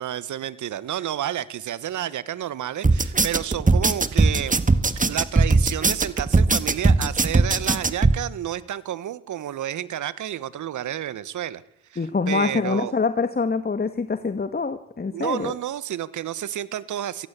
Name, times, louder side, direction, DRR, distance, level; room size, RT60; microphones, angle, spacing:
voice 1, 0.0-4.6 4.9-11.6 11.9-13.0 15.1-17.3, right 11 dB, 70° right, 17 dB, 1.6 m, -30 dB
sound 1, 2.8-8.2, right 3 dB, 25° right, 1.8 m, -19 dB
voice 2, 12.0-15.5, left 4 dB, 30° left, 11 dB, 1.9 m, -25 dB
23.0 x 17.0 x 8.4 m, 0.79 s
hypercardioid pair, 45°, 31 cm